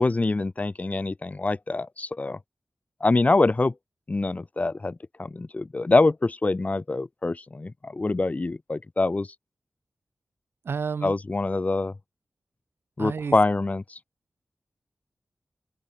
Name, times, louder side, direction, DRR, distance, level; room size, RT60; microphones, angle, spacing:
voice 1, 0.0-2.4 3.0-3.7 4.1-9.3 11.0-11.9 13.0-14.0, left 3 dB, 40° left, 2.0 m, -25 dB
voice 2, 10.6-11.1 13.0-13.4, right 5 dB, 90° right, 4.2 m, -30 dB
open air
wide cardioid pair, 70°, 4 cm